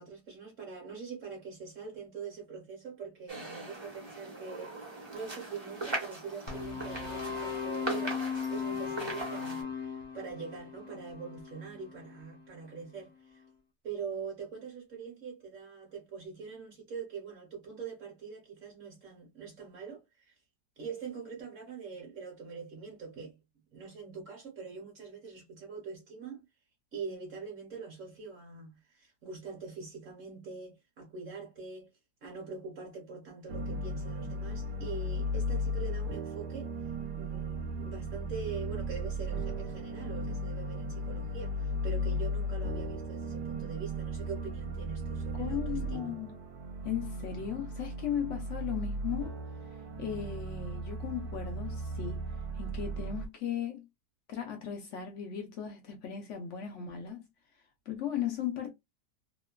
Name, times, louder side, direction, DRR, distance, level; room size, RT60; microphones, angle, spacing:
voice 1, 0.0-8.2 8.5-13.4 13.8-20.3 20.8-23.4 23.7-26.5 26.9-31.9 32.2-36.7 37.1-46.2, right 5 dB, 55° right, 1.1 m, -43 dB
sound 1, 3.3-9.6, right 2 dB, 25° right, 0.6 m, -40 dB
sound 2, 6.5-12.7, left 6 dB, 35° left, 0.7 m, -38 dB
sound 3, 33.5-53.3, equal, 75° right, 1.1 m, -36 dB
voice 2, 45.3-46.3 46.8-49.3 50.0-52.2 52.5-53.9 54.3-57.2 57.9-58.7, left 9 dB, 70° left, 0.7 m, -36 dB
2.9 x 2.2 x 2.2 m
omnidirectional pair, 1.8 m